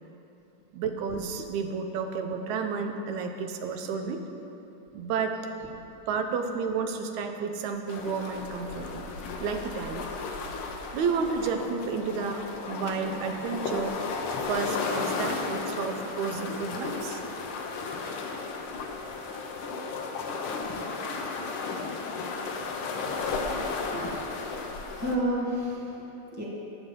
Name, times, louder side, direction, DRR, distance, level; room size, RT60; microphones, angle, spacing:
voice 1, 0.7-4.2 4.9-5.4 6.1-9.0 9.4-10.1 10.9-14.0 14.5-17.2, right 5 dB, 80° right, 5 dB, 2.1 m, -31 dB
sound 1, 7.9-25.2, left 4 dB, 90° left, 1.1 m, -34 dB
voice 2, 23.3-24.3 24.9-26.5, equal, 25° right, -5 dB, 0.3 m, -33 dB
19.0 x 7.0 x 3.8 m, 3.0 s
omnidirectional pair, 3.4 m